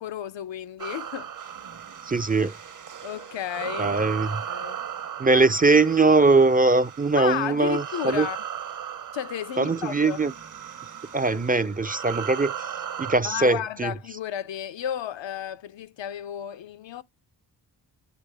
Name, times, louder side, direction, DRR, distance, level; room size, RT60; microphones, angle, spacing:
voice 1, 0.0-1.3 3.0-4.0 4.5-4.8 7.2-8.4 9.1-10.2 13.2-17.0, left 10 dB, 75° left, 0.7 m, -33 dB
sound 1, 0.8-13.2, right 9 dB, 45° right, 0.9 m, -37 dB
voice 2, 2.0-2.6 3.8-4.4 5.2-8.3 9.6-10.3 11.1-12.7 13.0-13.9, right 3 dB, 20° right, 0.5 m, -21 dB
9.2 x 3.1 x 3.4 m
cardioid pair, 50°, 45 cm